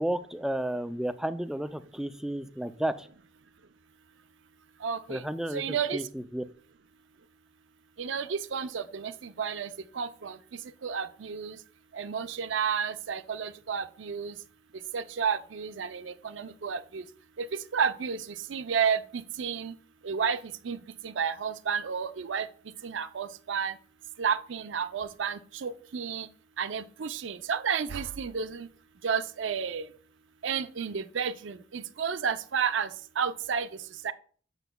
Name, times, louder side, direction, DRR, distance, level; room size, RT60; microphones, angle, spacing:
voice 1, 0.0-3.1 5.1-6.4, right 1 dB, 5° right, 11 dB, 0.3 m, -32 dB
voice 2, 4.8-5.2 5.5-6.0 8.0-9.7 9.9-10.4 10.8-11.6 11.9-14.3 14.9-17.0 17.4-17.5 17.7-18.2 18.5-19.7 20.0-20.4 20.6-20.8 21.0-22.5 22.8-23.7 24.2-26.3 26.6-28.7 29.0-29.9 30.4-32.9 33.2-33.7 34.0-34.1, right 6 dB, 75° right, 13 dB, 0.5 m, -31 dB
8.0 x 6.8 x 2.2 m, 0.44 s
head